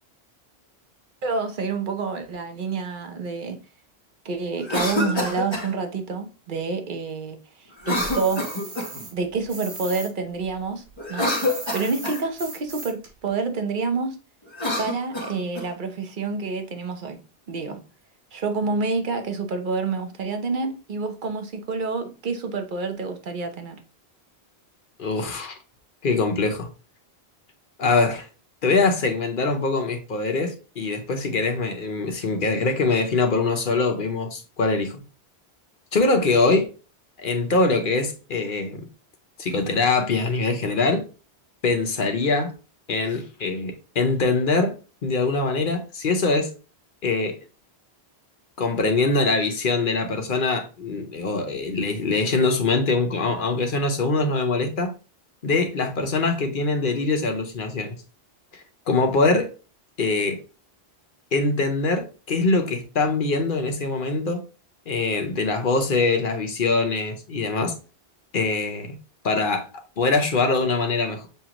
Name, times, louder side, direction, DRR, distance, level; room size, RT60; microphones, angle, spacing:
voice 1, 1.2-3.6 4.2-8.5 9.1-10.8 11.1-11.3 11.7-14.2 14.8-17.2 17.5-17.8 18.3-23.8, right 4 dB, 55° right, 0.9 m, -28 dB
Cough, 4.6-5.7 7.8-9.0 11.0-12.2 14.5-15.7, left 1 dB, 25° left, 1.2 m, -27 dB
sound 1, 7.9-10.1 10.4-13.1, right 3 dB, 75° right, 1.4 m, -38 dB
voice 2, 25.0-25.6 26.0-26.7 27.8-28.3 28.6-35.0 35.9-36.7 37.2-38.9 39.4-41.0 41.6-42.5 42.9-44.8 45.0-46.5 47.0-47.4 48.6-54.9 55.4-58.0 58.5-59.5 60.0-60.4 61.3-64.4 64.9-67.7 68.3-69.0 69.2-69.7 70.0-71.3, left 3 dB, 55° left, 0.9 m, -23 dB
6.7 x 2.4 x 2.9 m
omnidirectional pair, 1.1 m